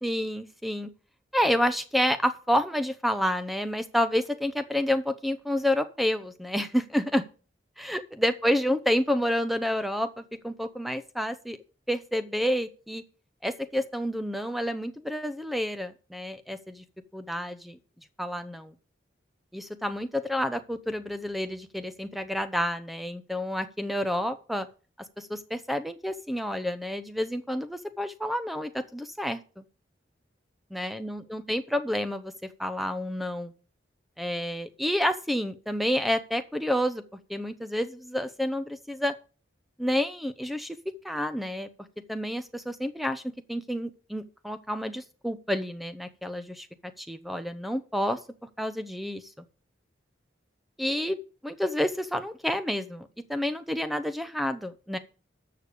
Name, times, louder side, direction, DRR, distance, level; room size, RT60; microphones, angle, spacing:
voice 1, 0.0-0.9 1.3-7.2 7.8-11.6 11.9-13.0 13.4-16.8 17.1-17.8 18.2-18.7 19.5-24.7 25.2-29.6 30.7-33.5 34.2-37.0 37.3-39.1 39.8-40.8 41.0-41.7 42.1-43.2 43.5-48.2 48.6-49.3 50.8-51.2 51.4-55.0, equal, ahead, 11 dB, 0.7 m, -29 dB
13.0 x 6.7 x 5.1 m, 0.37 s
head